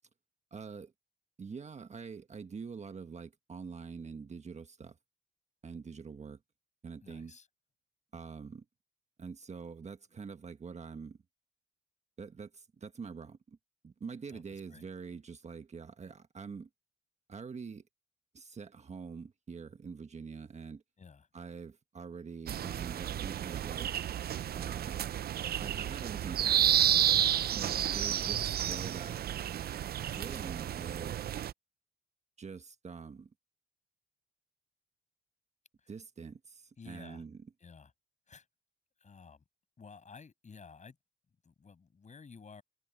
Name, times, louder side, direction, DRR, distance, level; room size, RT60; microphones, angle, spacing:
voice 1, 0.5-0.9 1.4-5.0 5.6-6.4 6.8-7.3 8.1-8.6 9.2-11.2 12.2-13.6 13.8-16.7 17.3-17.8 18.3-20.8 21.3-23.9 24.5-25.0 25.6-26.7 27.6-29.3 30.1-31.3 32.4-33.3 35.9-37.4, right 5 dB, 35° right, 1.4 m, -45 dB
voice 2, 7.0-7.5 14.3-14.9 21.0-21.3 27.1-28.3 35.8-35.9 36.8-37.2 37.6-37.9 38.3-38.5 39.0-39.4 39.8-41.0 41.4-42.6, left 5 dB, 35° left, 7.4 m, -53 dB
sound 1, 22.5-31.5, right 11 dB, 50° right, 0.5 m, -31 dB
cardioid pair, 90°, 20 cm